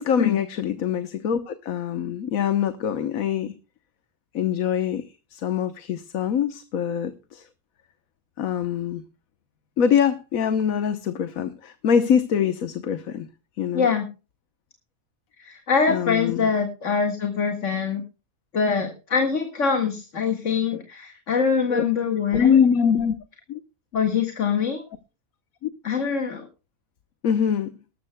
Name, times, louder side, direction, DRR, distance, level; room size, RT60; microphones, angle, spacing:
voice 1, 0.0-3.5 4.3-5.0 5.3-7.4 8.4-9.0 9.8-13.3 13.6-13.9 15.9-16.5 21.7-21.9 22.3-23.1 23.5-23.6 25.6-25.7 27.2-27.7, left 8 dB, 85° left, 1.4 m, -23 dB
voice 2, 13.7-14.1 15.4-18.0 18.5-22.6 23.9-24.8 25.8-26.4, left 5 dB, 65° left, 2.1 m, -24 dB
19.5 x 13.5 x 2.2 m
omnidirectional pair, 1.4 m